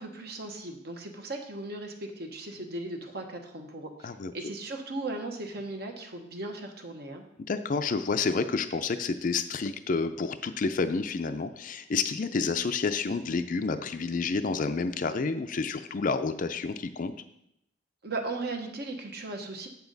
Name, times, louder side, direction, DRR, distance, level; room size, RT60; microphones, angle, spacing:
voice 1, 0.0-7.2 18.0-19.7, right 2 dB, 55° right, 4 dB, 1.1 m, -37 dB
voice 2, 7.5-17.1, left 4 dB, 45° left, 9 dB, 0.4 m, -29 dB
8.2 x 7.1 x 4.0 m, 0.78 s
head